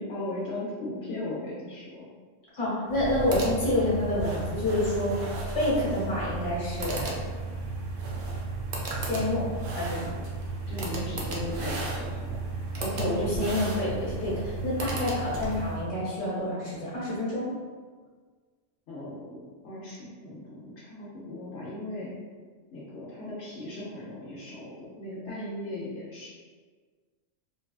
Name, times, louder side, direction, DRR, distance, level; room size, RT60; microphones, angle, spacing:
voice 1, 0.0-2.1 10.7-12.4 18.9-22.1 22.7-26.3, left 1 dB, 75° left, -8 dB, 0.9 m, -37 dB
voice 2, 2.5-7.2 9.0-10.1 12.8-17.5, left 1 dB, 40° left, -8 dB, 1.2 m, -28 dB
sound 1, 2.9-15.9, right 3 dB, 60° right, 0.7 m, -34 dB
3.2 x 2.3 x 2.3 m, 1.5 s
omnidirectional pair, 1.2 m